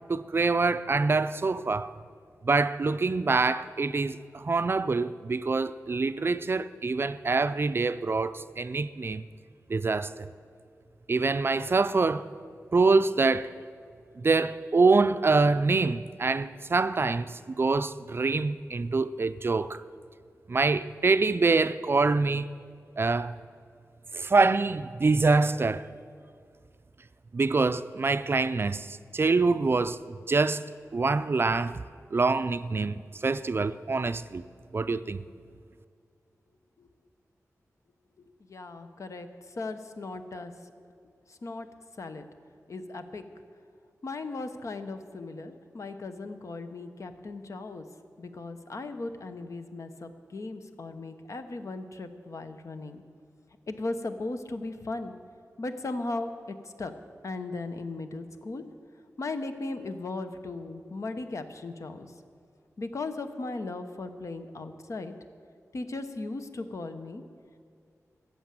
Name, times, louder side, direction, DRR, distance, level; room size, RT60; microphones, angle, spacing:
voice 1, 0.1-1.9 2.4-9.2 9.7-10.3 11.1-12.3 12.7-13.5 14.2-19.8 20.5-22.5 23.0-23.3 24.1-25.8 27.3-30.0 30.3-30.6 30.9-31.8 32.1-34.4 34.7-35.2, right 3 dB, 40° right, 0.4 m, -25 dB
voice 2, 38.5-40.7 41.3-41.7 42.0-42.2 42.7-43.2 44.0-47.9 48.2-53.0 53.7-55.1 55.6-56.3 56.6-56.9 57.2-58.6 59.2-62.1 62.8-65.2 65.7-67.2, left 3 dB, 60° left, 1.0 m, -37 dB
14.0 x 8.8 x 7.5 m
wide cardioid pair, 75°, 6 cm